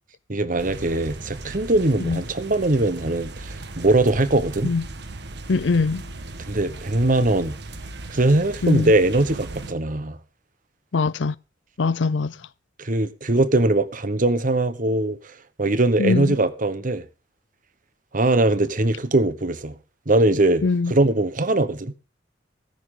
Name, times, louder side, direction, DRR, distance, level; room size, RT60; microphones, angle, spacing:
voice 1, 0.3-4.7 6.5-7.5 8.1-10.2 12.8-15.2 15.6-17.0 18.1-19.8 20.1-20.6 20.9-21.9, right 2 dB, 50° right, 1.2 m, -21 dB
sound 1, 0.6-9.7, right 2 dB, 65° right, 1.5 m, -37 dB
voice 2, 5.5-6.0 8.6-8.9 10.9-11.3 11.8-12.4 16.0-16.4 20.6-20.9, left 4 dB, 85° left, 0.6 m, -22 dB
15.0 x 13.5 x 3.9 m
head